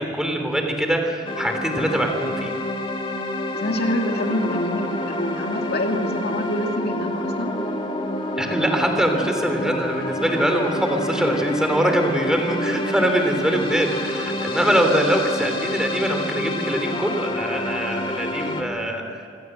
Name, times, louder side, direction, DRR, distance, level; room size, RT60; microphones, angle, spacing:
voice 1, 0.0-2.5 8.4-19.3, right 1 dB, 5° right, 4 dB, 3.2 m, -23 dB
sound 1, 1.2-18.6, left 1 dB, 30° left, 2.2 m, -28 dB
voice 2, 3.5-7.6, left 1 dB, 55° left, 3 dB, 2.4 m, -26 dB
26.5 x 17.5 x 8.0 m, 2.6 s
head